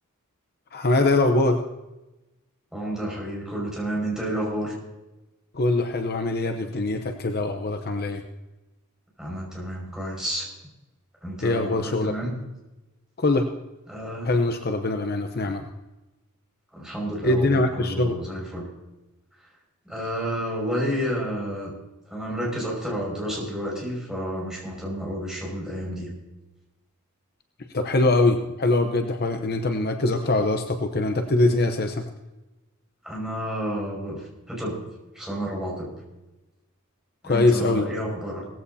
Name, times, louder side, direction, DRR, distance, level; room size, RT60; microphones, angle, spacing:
voice 1, 0.7-1.6 5.5-8.2 11.4-12.1 13.2-13.5 14.2-15.6 17.2-18.2 27.7-32.0 37.2-37.9, left 2 dB, 45° left, 6 dB, 0.8 m, -23 dB
voice 2, 2.7-4.7 9.2-10.5 11.2-12.3 13.9-14.3 16.7-18.6 19.8-21.7 22.1-26.1 33.0-34.8 35.1-35.9 37.2-38.4, equal, 5° right, -4 dB, 5.7 m, -30 dB
18.0 x 15.0 x 2.8 m, 1.0 s
head